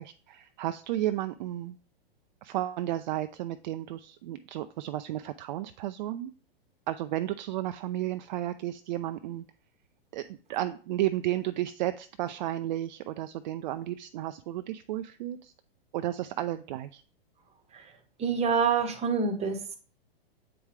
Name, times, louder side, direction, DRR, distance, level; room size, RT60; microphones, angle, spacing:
voice 1, 0.0-1.8 2.4-6.3 6.9-9.4 10.1-15.5 15.9-17.0, right 14 dB, 50° right, 11 dB, 0.4 m, -33 dB
voice 2, 17.7-19.8, right 6 dB, 20° right, 8 dB, 1.1 m, -27 dB
7.8 x 4.8 x 3.3 m, 0.42 s
hypercardioid pair, 110°, 30 cm